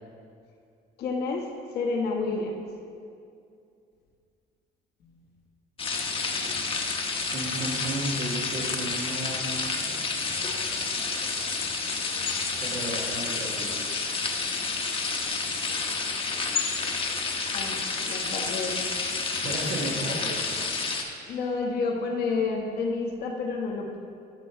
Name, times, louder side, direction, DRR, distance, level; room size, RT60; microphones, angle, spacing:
voice 1, 1.0-1.4 1.7-2.7 5.0-5.2 17.5-18.8 21.3-24.0, left 4 dB, 70° left, 0 dB, 1.2 m, -30 dB
sound 1, 5.8-21.0, left 4 dB, 35° left, 0.9 m, -30 dB
voice 2, 7.3-9.6 12.6-13.8 19.4-20.6, right 2 dB, 80° right, -5 dB, 1.5 m, -33 dB
9.8 x 5.3 x 4.4 m, 2.4 s
cardioid pair, 110°, 17 cm